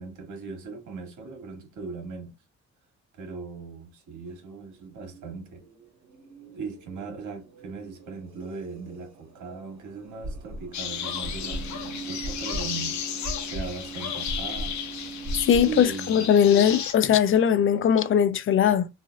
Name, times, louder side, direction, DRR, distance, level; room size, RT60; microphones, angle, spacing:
voice 1, 0.0-2.3 3.1-5.6 6.5-13.0 13.4-14.8 15.6-16.3, right 4 dB, 80° right, 1.5 m, -39 dB
sound 1, 4.3-15.9, right 5 dB, 60° right, 1.7 m, -44 dB
sound 2, 10.2-10.8 11.2-15.9, equal, 40° right, 1.4 m, -35 dB
sound 3, 10.7-16.9, left 8 dB, 70° left, 0.8 m, -34 dB
voice 2, 15.5-18.9, left 8 dB, 45° left, 0.4 m, -20 dB
3.2 x 2.5 x 2.4 m
cardioid pair, 90°, 30 cm